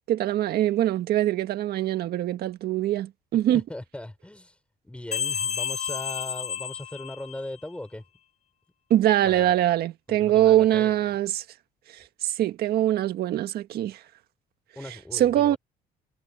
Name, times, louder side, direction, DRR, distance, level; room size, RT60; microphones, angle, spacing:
voice 1, 0.0-3.6 8.9-11.4 12.2-14.0 15.1-15.6, right 13 dB, 70° right, 1.7 m, -23 dB
voice 2, 3.5-8.0 9.2-9.5 10.1-10.9 14.7-15.6, left 1 dB, 5° left, 5.0 m, -39 dB
sound 1, 5.1-7.7, left 7 dB, 45° left, 6.3 m, -31 dB
cardioid pair, 110°, 17 cm